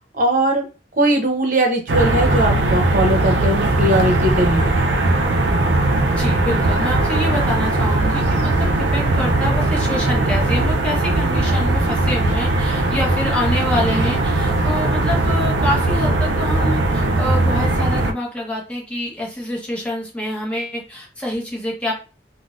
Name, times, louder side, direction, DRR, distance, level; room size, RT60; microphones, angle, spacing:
voice 1, 0.1-0.7 0.9-4.9, right 1 dB, 45° right, 2 dB, 0.8 m, -19 dB
sound 1, 1.9-18.1, right 2 dB, 85° right, 0.5 m, -19 dB
voice 2, 6.1-21.9, left 1 dB, 5° left, -3 dB, 1.0 m, -26 dB
3.8 x 2.2 x 2.5 m, 0.33 s
head